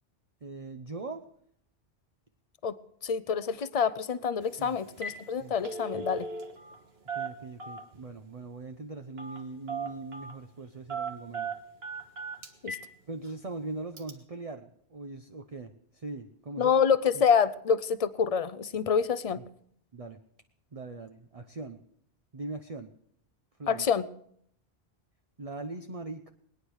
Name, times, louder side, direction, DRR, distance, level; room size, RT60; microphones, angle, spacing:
voice 1, 0.4-1.2 4.6-4.8 5.4-5.5 7.1-11.5 13.1-16.7 17.1-17.2 19.4-19.5 19.9-20.2 20.7-21.8 22.3-22.9 23.6-23.8 25.4-26.3, right 3 dB, 35° right, 5 dB, 0.9 m, -41 dB
voice 2, 2.6-6.3 12.6-12.8 16.6-19.4 23.7-24.0, left 6 dB, 40° left, 16 dB, 0.7 m, -27 dB
Telephone, 4.4-4.6 4.9-5.2 5.5-6.8 7.1-8.0 9.2-9.4 9.7-10.4 10.9-12.9 13.3-13.4 14.0-14.1, right 4 dB, 75° right, 2.0 m, -37 dB
21.0 x 10.0 x 6.4 m, 0.67 s
omnidirectional pair, 1.1 m